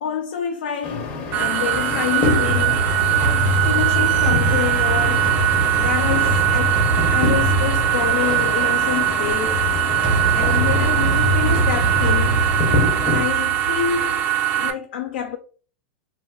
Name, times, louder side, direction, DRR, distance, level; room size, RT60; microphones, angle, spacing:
voice 1, 0.0-5.3 5.8-6.8 7.1-9.7 10.3-12.4 13.0-15.4, left 9 dB, 75° left, 0.5 m, -27 dB
sound 1, 0.8-13.2, left 3 dB, 40° left, 0.8 m, -29 dB
sound 2, 1.3-14.7, right 12 dB, 40° right, 0.5 m, -21 dB
sound 3, 2.2-14.1, right 1 dB, 75° right, 1.0 m, -24 dB
2.5 x 2.1 x 3.7 m
hypercardioid pair, 115°, 5 cm